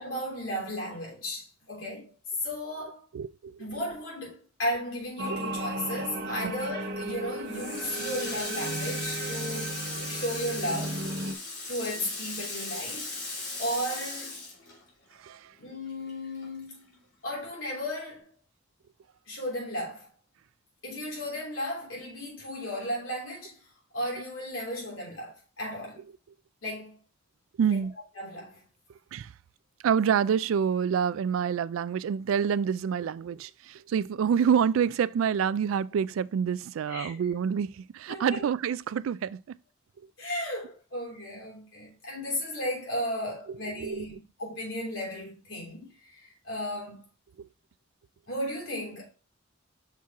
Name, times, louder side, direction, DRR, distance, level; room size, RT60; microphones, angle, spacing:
voice 1, 0.0-2.1 2.4-3.0 3.6-9.8 10.1-11.1 11.7-13.2 13.6-14.4 15.6-16.9 17.2-18.3 19.3-20.1 20.8-23.6 23.9-26.0 26.6-27.0 27.7-27.8 28.2-28.6 36.9-37.2 38.1-38.5 40.2-47.0 48.3-49.1, equal, 75° left, 3.3 m, -35 dB
voice 2, 3.1-3.6 6.4-6.5 15.2-15.5 27.6-27.9 29.1-29.3 29.8-39.6 43.8-44.1 47.4-47.5, right 7 dB, 80° right, 0.3 m, -27 dB
sound 1, 5.2-11.3, right 1 dB, 55° right, 0.7 m, -35 dB
Water tap faucet, 7.5-15.3 15.7-17.0, left 2 dB, 60° left, 2.8 m, -38 dB
6.1 x 4.3 x 3.6 m
head